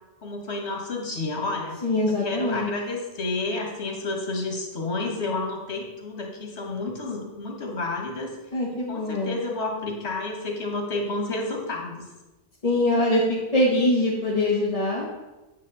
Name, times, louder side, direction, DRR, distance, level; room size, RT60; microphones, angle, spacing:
voice 1, 0.2-1.8 2.1-8.3 8.9-12.1, left 2 dB, 75° left, 1 dB, 2.0 m, -30 dB
voice 2, 1.8-2.7 8.5-9.4 12.6-15.0, left 1 dB, 35° left, -5 dB, 1.3 m, -23 dB
9.6 x 7.3 x 4.1 m, 1.1 s
omnidirectional pair, 1.1 m